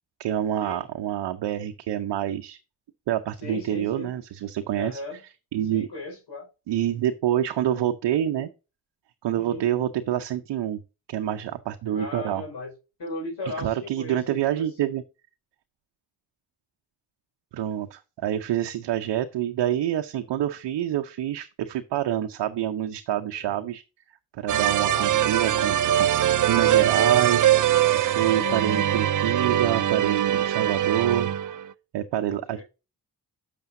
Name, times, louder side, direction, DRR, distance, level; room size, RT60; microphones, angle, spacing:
voice 1, 0.2-2.6 3.1-5.0 5.5-5.9 6.7-8.5 9.2-10.8 11.1-12.4 13.6-15.0 17.5-23.8 24.3-26.1 26.5-27.5 28.0-31.6 31.9-32.6, right 11 dB, 85° right, 0.7 m, -27 dB
voice 2, 3.4-4.2 4.7-5.2 5.7-6.5 9.3-9.7 11.9-12.7 13.0-14.7 23.3-23.7 24.8-25.2 28.3-28.7 32.2-32.6, left 2 dB, 75° left, 5.1 m, -37 dB
sound 1, 24.5-31.7, right 11 dB, 50° right, 0.5 m, -22 dB
10.5 x 6.7 x 2.6 m
cardioid pair, 55°, 41 cm